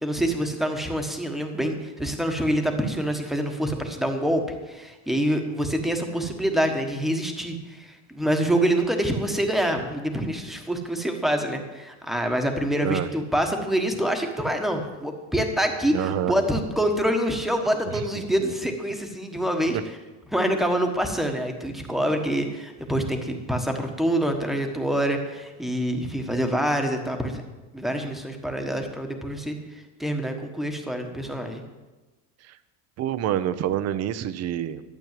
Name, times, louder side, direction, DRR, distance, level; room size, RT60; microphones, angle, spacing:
voice 1, 0.0-19.8 20.3-27.4 27.7-31.6, equal, ahead, 4 dB, 1.3 m, -26 dB
voice 2, 15.9-16.3 17.9-18.5 19.7-19.8 32.4-32.6 33.0-34.8, right 11 dB, 35° right, 13 dB, 0.7 m, -28 dB
12.5 x 8.6 x 7.5 m, 1.2 s
cardioid pair, 150°, 43 cm